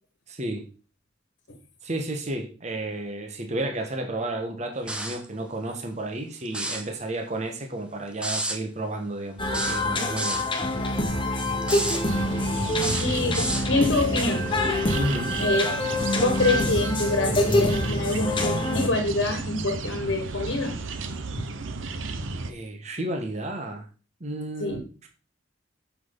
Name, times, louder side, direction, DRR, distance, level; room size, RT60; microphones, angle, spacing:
voice 1, 0.3-0.6 1.8-10.4 14.9-15.4 22.5-23.9 24.2-25.1, right 1 dB, 35° right, 4 dB, 1.4 m, -32 dB
sound 1, 4.9-5.3 6.5-6.9 8.2-8.6 9.5-10.5 11.6-12.0 12.8-13.7, right 1 dB, 5° right, 1.0 m, -30 dB
sound 2, 9.4-18.9, left 1 dB, 25° left, 1.3 m, -26 dB
sound 3, 12.1-22.5, right 3 dB, 85° right, 0.9 m, -33 dB
voice 2, 13.0-14.5 15.4-15.8 16.1-20.7 21.4-21.5 24.6-24.8, left 2 dB, 70° left, 5 dB, 1.5 m, -26 dB
8.5 x 6.2 x 3.9 m, 0.35 s
head